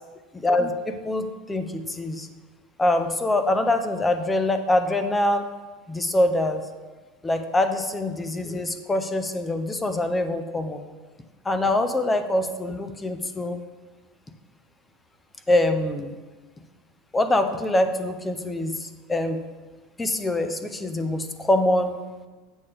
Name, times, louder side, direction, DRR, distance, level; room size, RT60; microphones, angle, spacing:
voice 1, 0.3-2.3 2.8-5.5 5.9-6.6 7.2-10.8 11.4-13.6 15.5-16.2 17.1-19.4 20.0-22.0, left 1 dB, 10° left, 8 dB, 0.4 m, -24 dB
8.3 x 7.1 x 3.3 m, 1.3 s
supercardioid pair, 170°, 0 cm